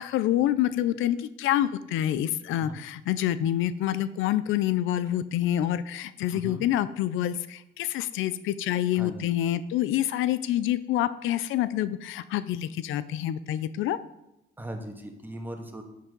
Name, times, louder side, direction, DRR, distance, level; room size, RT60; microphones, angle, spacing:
voice 1, 0.0-14.0, left 12 dB, 90° left, 15 dB, 0.5 m, -27 dB
voice 2, 6.3-6.7 8.9-9.2 14.6-15.8, right 1 dB, 10° right, 3 dB, 1.7 m, -39 dB
10.5 x 8.3 x 3.9 m, 0.87 s
cardioid pair, 90°, 20 cm